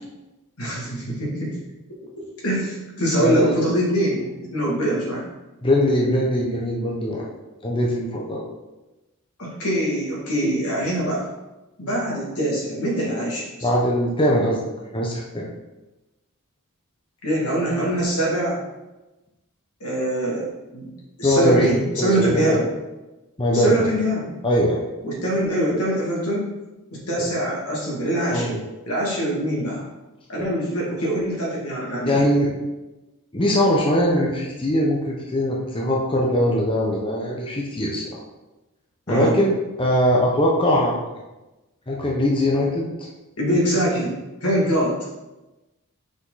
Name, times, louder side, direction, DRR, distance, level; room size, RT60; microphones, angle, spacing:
voice 1, 0.6-1.6 2.4-5.3 9.4-11.3 11.8-13.7 17.2-18.6 19.8-20.9 21.2-22.7 23.5-24.3 25.0-26.5 26.9-28.5 28.8-29.8 30.3-32.2 39.1-39.3 43.4-45.0, right 1 dB, 80° left, -4 dB, 2.5 m, -23 dB
voice 2, 3.2-3.6 5.6-7.3 7.6-8.4 13.6-14.6 14.9-15.5 21.2-21.7 22.0-22.6 23.4-23.9 24.4-24.8 27.2-27.3 28.3-28.6 32.0-32.5 33.3-38.2 39.1-41.0 41.9-42.9, equal, 25° left, -2 dB, 0.9 m, -21 dB
6.1 x 5.1 x 4.1 m, 1.1 s
head